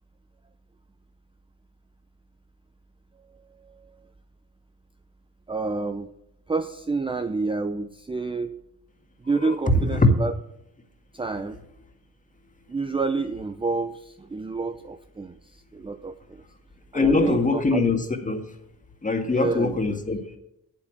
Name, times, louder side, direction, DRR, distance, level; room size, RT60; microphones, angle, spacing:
voice 1, 3.5-3.9 5.5-6.1 6.5-8.6 9.2-10.3 11.1-11.6 12.7-16.4 16.9-17.8 19.2-19.8, right 3 dB, 15° right, 0.6 m, -29 dB
voice 2, 16.9-18.4 19.0-20.4, left 3 dB, 20° left, 1.9 m, -22 dB
8.5 x 8.3 x 7.5 m
cardioid pair, 80°, 36 cm